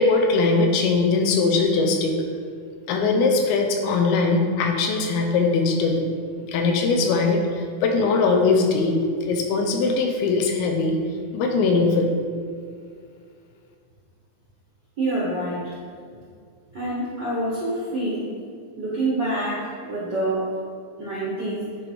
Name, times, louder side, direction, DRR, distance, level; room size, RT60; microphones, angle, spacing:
voice 1, 0.0-2.1 2.9-6.0 6.5-9.0 9.3-11.0 11.3-12.1, left 3 dB, 85° left, 3 dB, 2.7 m, -21 dB
voice 2, 15.0-15.8 16.7-18.3 18.8-20.5 21.0-21.6, right 1 dB, 55° right, -9 dB, 1.1 m, -26 dB
10.0 x 3.4 x 4.6 m, 2.2 s
omnidirectional pair, 4.3 m